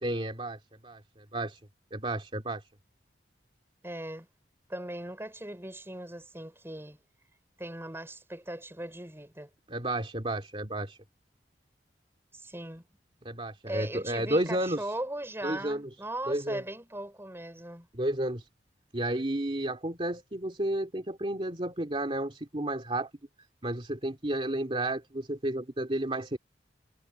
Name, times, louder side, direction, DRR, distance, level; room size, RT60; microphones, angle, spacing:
voice 1, 0.0-1.6 1.9-2.6 9.7-11.0 13.2-14.8 15.4-15.9 16.3-16.6 17.9-18.4 18.9-23.1 23.6-26.4, right 1 dB, 30° right, 2.7 m, -32 dB
voice 2, 3.8-4.3 4.7-7.0 7.6-9.5 12.3-12.8 13.7-17.9, right 1 dB, 15° right, 5.5 m, -39 dB
head